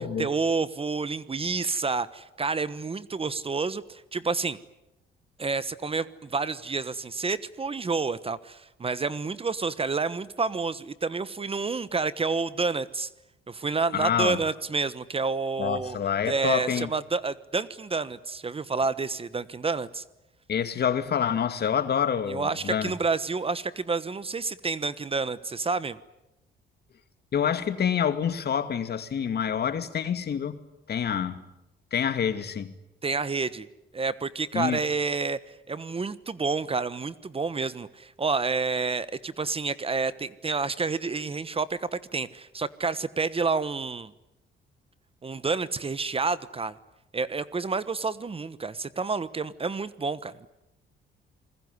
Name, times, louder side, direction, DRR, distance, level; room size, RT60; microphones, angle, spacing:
voice 1, 0.2-4.6 5.4-13.1 13.5-16.0 16.3-20.0 22.3-26.0 33.0-33.7 33.9-35.4 35.7-44.1 45.2-46.7 47.1-50.5, right 4 dB, 30° right, 1.2 m, -29 dB
voice 2, 13.9-14.4 15.6-16.9 20.5-22.9 27.3-30.6 30.9-31.5 31.9-32.7 34.5-34.8, left 8 dB, 55° left, 2.3 m, -27 dB
28.0 x 21.0 x 9.7 m
cardioid pair, 90°, 20 cm